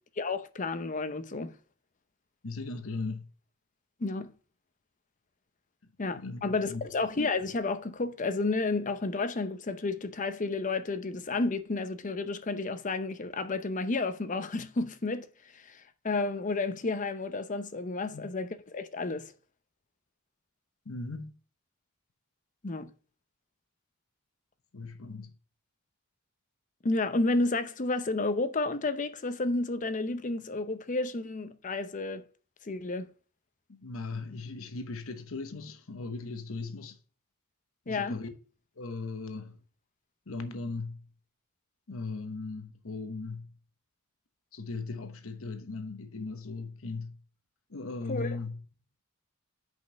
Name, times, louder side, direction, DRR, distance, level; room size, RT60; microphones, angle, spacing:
voice 1, 0.2-1.5 4.0-4.3 6.0-15.3 15.5-19.3 22.6-22.9 26.8-32.2 32.6-33.1 37.9-38.2 48.1-48.4, left 3 dB, 40° left, 0.7 m, -31 dB
voice 2, 2.4-3.3 6.1-6.4 6.7-6.8 18.1-18.2 20.8-21.3 24.7-25.3 33.7-37.0 37.9-38.3 38.8-39.6 40.3-41.1 41.9-43.5 44.5-47.2 47.7-48.6, left 3 dB, 80° left, 1.0 m, -38 dB
6.4 x 5.3 x 5.3 m
head